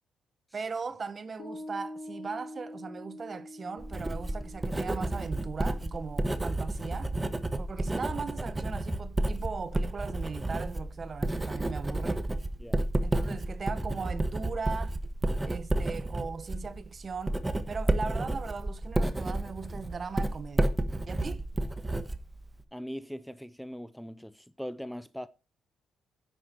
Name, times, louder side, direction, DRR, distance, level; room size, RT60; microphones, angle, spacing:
voice 1, 0.5-7.1 7.6-12.2 13.0-15.0 15.4-17.4 17.7-20.8 21.1-21.4, right 5 dB, 40° right, 1.0 m, -38 dB
Piano, 1.4-8.2, left 1 dB, 55° left, 2.5 m, -47 dB
Writing, 3.8-22.6, right 1 dB, 15° right, 1.3 m, -31 dB
voice 2, 22.7-25.3, equal, ahead, 0.6 m, -41 dB
10.0 x 9.1 x 4.5 m
cardioid pair, 90°, 0 cm